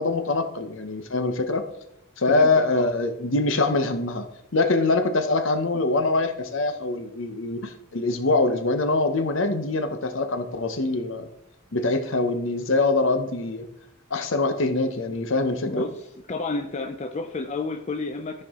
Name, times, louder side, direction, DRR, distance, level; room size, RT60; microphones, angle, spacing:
voice 1, 0.0-1.6 2.2-4.3 4.5-11.3 11.7-13.7 14.1-15.8, left 3 dB, 60° left, 8 dB, 0.8 m, -24 dB
voice 2, 2.3-2.9 15.6-18.4, left 2 dB, 30° left, 5 dB, 0.4 m, -31 dB
13.5 x 4.6 x 3.6 m, 0.80 s
head